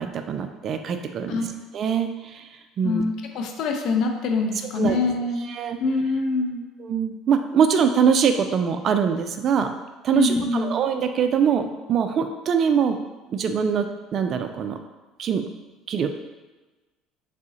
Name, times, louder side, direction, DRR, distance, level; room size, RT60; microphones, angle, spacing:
voice 1, 0.0-1.3 1.7-2.5 2.8-3.0 4.8-5.0 5.5-5.8 6.8-9.7 10.0-13.0 13.3-13.9 14.1-14.8 15.2-15.4 15.9-16.2, right 7 dB, 50° right, 7 dB, 0.3 m, -23 dB
voice 2, 2.8-5.5 5.8-6.6 10.1-10.8, left 3 dB, 65° left, 3 dB, 0.5 m, -24 dB
3.7 x 2.0 x 3.7 m, 1.2 s
supercardioid pair, 75°, 0 cm